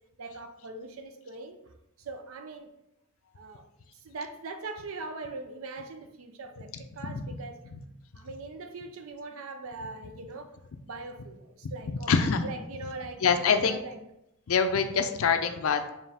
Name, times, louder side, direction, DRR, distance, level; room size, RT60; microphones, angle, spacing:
voice 1, 0.2-2.7 3.4-3.7 3.9-7.6 8.1-10.6 10.9-14.0, right 3 dB, 70° right, 7 dB, 0.5 m, -41 dB
voice 2, 12.1-12.5 13.2-13.8 14.5-15.9, left 6 dB, 70° left, 8 dB, 0.5 m, -25 dB
4.6 x 3.1 x 3.4 m, 0.86 s
head